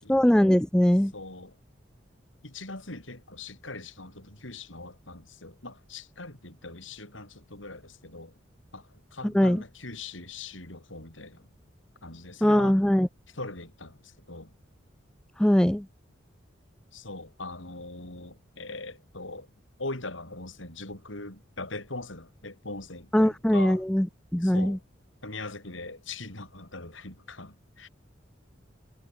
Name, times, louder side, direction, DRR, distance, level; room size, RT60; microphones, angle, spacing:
voice 1, 0.0-1.1 9.3-9.6 12.4-13.1 15.4-15.9 23.1-24.1 24.3-24.8, equal, 5° left, 0.3 m, -21 dB
voice 2, 1.1-1.6 2.4-8.4 8.7-11.5 12.0-12.8 13.3-14.5 16.9-19.5 19.8-23.8 24.4-24.8 25.2-27.9, left 2 dB, 80° left, 7.4 m, -41 dB
head